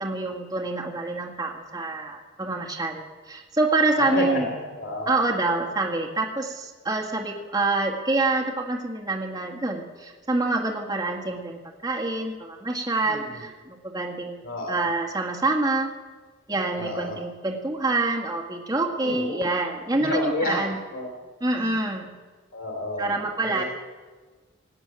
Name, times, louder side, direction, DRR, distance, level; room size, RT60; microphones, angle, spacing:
voice 1, 0.0-4.5 5.1-14.4 14.7-15.9 16.5-20.8 21.4-22.1 23.0-23.6, right 2 dB, 20° right, -2 dB, 1.8 m, -26 dB
voice 2, 4.0-5.1 13.0-13.4 14.4-14.9 16.7-17.2 19.0-19.4 19.9-21.1 21.6-21.8 22.5-23.1 23.4-23.6, left 2 dB, 85° left, 1 dB, 2.8 m, -31 dB
19.0 x 8.5 x 8.7 m, 1.4 s
head